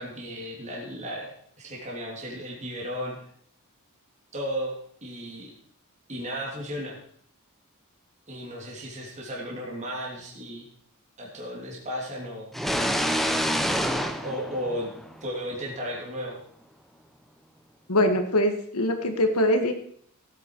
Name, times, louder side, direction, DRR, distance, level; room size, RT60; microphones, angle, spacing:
voice 1, 0.0-3.2 4.3-5.5 6.1-7.0 8.3-10.6 11.2-12.5 14.2-14.9 15.2-16.4, equal, 30° right, -3 dB, 2.8 m, -34 dB
sound 1, 12.5-15.3, equal, ahead, 0.8 m, -27 dB
voice 2, 17.9-19.7, left 1 dB, 85° left, 6 dB, 1.8 m, -23 dB
16.5 x 8.5 x 4.7 m, 0.63 s
head